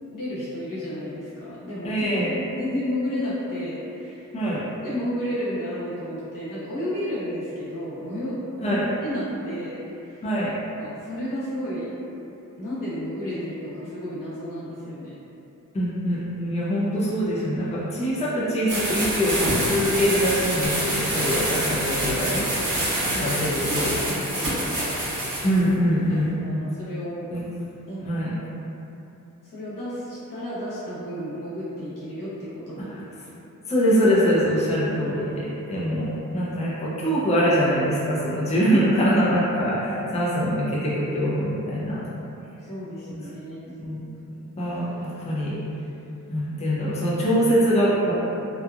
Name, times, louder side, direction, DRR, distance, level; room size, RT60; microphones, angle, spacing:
voice 1, 0.1-4.3 4.8-8.4 8.6-10.2 10.8-11.9 12.6-15.1 23.0-23.4 23.7-24.9 26.1-27.3 27.9-28.0 29.4-32.9 33.3-33.5 42.6-43.7, equal, 85° left, -10 dB, 1.0 m, -32 dB
voice 2, 1.8-2.3 4.3-4.6 8.6-8.8 10.2-10.5 15.7-22.5 23.1-23.9 25.4-26.3 27.3-27.4 28.0-28.4 33.7-42.1 43.1-43.2 43.8-44.1 44.6-45.6 46.3-48.1, equal, 20° left, -8 dB, 0.5 m, -23 dB
sound 1, 18.7-25.6, right 1 dB, 80° right, 1.0 m, -26 dB
2.8 x 2.3 x 2.3 m, 2.9 s
wide cardioid pair, 120°, 32 cm